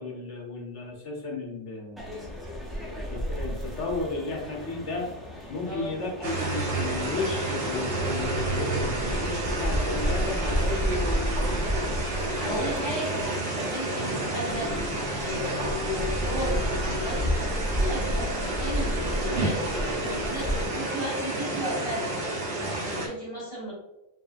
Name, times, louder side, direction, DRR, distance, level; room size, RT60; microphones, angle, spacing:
voice 1, 0.0-2.3 2.9-5.1 5.5-11.9 12.4-12.8 13.9-14.2, left 3 dB, 65° left, 0 dB, 1.2 m, -34 dB
sound 1, 2.0-20.6, equal, ahead, 0.5 m, -32 dB
voice 2, 5.7-6.1 12.3-14.7 15.2-22.2 22.6-23.7, equal, 30° left, -8 dB, 1.7 m, -34 dB
sound 2, 6.2-23.1, right 2 dB, 75° right, 1.3 m, -30 dB
5.2 x 2.8 x 2.5 m, 0.92 s
omnidirectional pair, 1.3 m